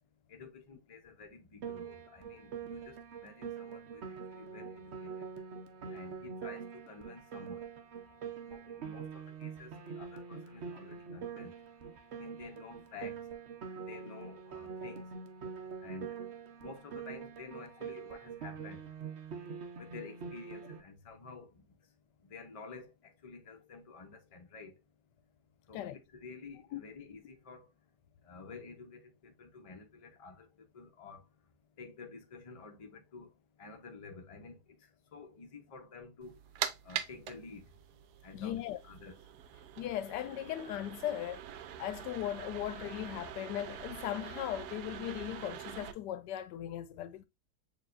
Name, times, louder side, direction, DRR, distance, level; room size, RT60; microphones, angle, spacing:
voice 1, 0.3-5.3 5.9-7.6 8.4-11.5 12.1-13.2 13.7-15.1 15.8-16.2 16.6-18.9 19.8-21.6 22.2-24.8 25.7-27.7 28.2-31.2 31.8-33.3 33.6-36.3 36.8-37.7 38.2-39.3, left 4 dB, 30° left, 0.6 m, -50 dB
Piano, 1.6-20.8, right 6 dB, 55° right, 0.8 m, -44 dB
sound 1, 36.2-45.9, right 10 dB, 75° right, 1.1 m, -44 dB
voice 2, 38.3-38.8 39.8-41.4 41.8-47.3, left 12 dB, 85° left, 1.2 m, -38 dB
6.8 x 2.9 x 2.4 m
omnidirectional pair, 1.8 m